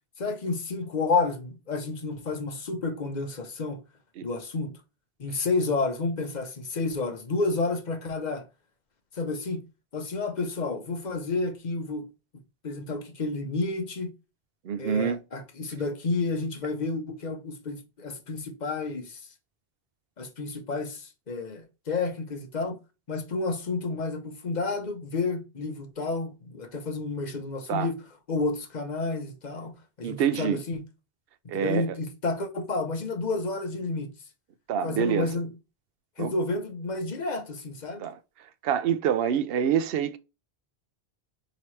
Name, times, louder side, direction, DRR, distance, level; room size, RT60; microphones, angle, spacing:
voice 1, 0.2-3.8 4.2-4.7 5.2-8.4 9.1-9.6 9.9-12.0 12.6-14.1 14.8-19.2 20.2-22.8 23.1-28.0 28.3-30.8 31.5-34.1 34.8-35.5 36.2-38.0, left 3 dB, 45° left, 0.9 m, -30 dB
voice 2, 14.6-15.2 27.7-27.9 30.0-30.6 31.5-31.9 34.7-35.3 36.2-36.3 38.0-38.2 38.6-40.2, right 8 dB, 65° right, 0.7 m, -26 dB
4.9 x 2.9 x 3.0 m
omnidirectional pair, 1.1 m